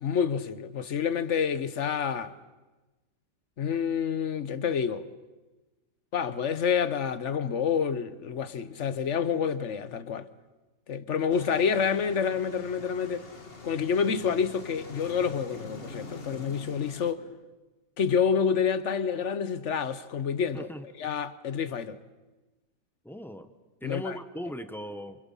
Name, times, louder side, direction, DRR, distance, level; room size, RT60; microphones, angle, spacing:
voice 1, 0.0-2.3 3.6-5.1 6.1-10.3 10.9-13.3 13.6-17.3 18.0-22.0 23.8-24.2, left 7 dB, 50° left, 1.1 m, -28 dB
sound 1, 11.3-17.1, left 3 dB, 35° left, 1.8 m, -44 dB
voice 2, 20.5-20.8 23.0-23.5 23.8-25.2, equal, ahead, 0.8 m, -38 dB
29.5 x 27.5 x 5.6 m
omnidirectional pair, 1.8 m